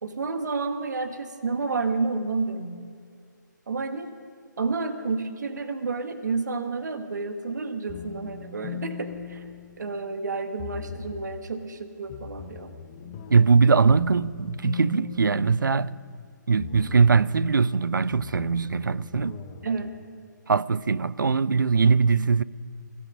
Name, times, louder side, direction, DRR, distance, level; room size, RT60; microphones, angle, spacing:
voice 1, 0.0-2.8 3.7-4.1 4.6-9.4 9.8-12.8 19.6-19.9, right 4 dB, 65° right, 1.5 m, -30 dB
sound 1, 7.9-10.1 10.6-11.4 12.1-16.2 16.6-17.4 18.1-19.9, left 8 dB, 20° left, 0.8 m, -40 dB
voice 2, 13.3-16.0 16.5-19.4 20.5-22.4, right 5 dB, 85° right, 0.5 m, -21 dB
16.5 x 14.5 x 5.4 m
hypercardioid pair, 160°, 10 cm